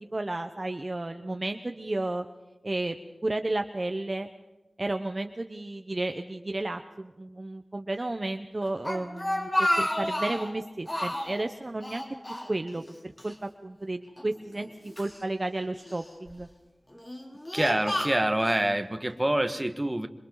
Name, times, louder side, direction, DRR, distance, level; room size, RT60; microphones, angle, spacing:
voice 1, 0.0-2.3 2.6-3.0 3.2-4.3 4.8-12.0 12.5-16.5, right 2 dB, 40° right, 6 dB, 1.0 m, -32 dB
Speech, 8.6-10.5 10.9-11.4 11.8-12.9 13.2-13.3 14.2-15.2 15.9-16.3 16.9-18.6, left 1 dB, 25° left, 3.3 m, -31 dB
voice 2, 17.5-20.1, right 1 dB, 20° right, 7 dB, 1.7 m, -26 dB
27.0 x 25.5 x 4.0 m, 1.0 s
wide cardioid pair, 70°, 0 cm